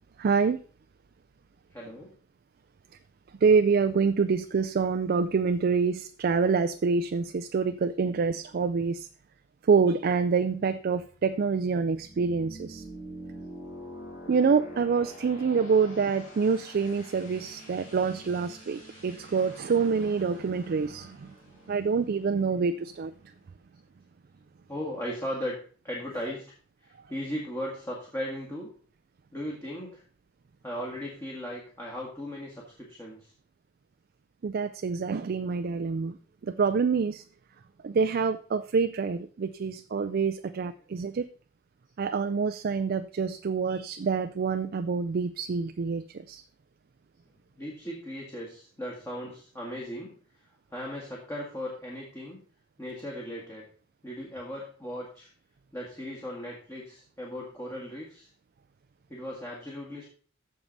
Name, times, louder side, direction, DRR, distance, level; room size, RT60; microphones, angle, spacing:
voice 1, 0.2-0.6 3.4-9.1 9.7-12.8 14.3-21.3 21.7-23.1 34.4-36.2 36.4-37.2 37.8-41.3 42.0-46.4, right 5 dB, 50° right, 10 dB, 0.4 m, -26 dB
voice 2, 1.7-2.1 24.7-25.6 25.8-26.5 26.8-28.7 29.3-30.0 30.6-33.3 47.6-50.2 50.7-52.4 52.8-53.7 54.0-55.3 55.7-58.3 59.1-60.0, equal, 15° left, -3 dB, 1.8 m, -37 dB
sound 1, 10.8-23.4, equal, 40° left, 4.8 m, -47 dB
14.0 x 4.7 x 4.0 m, 0.42 s
head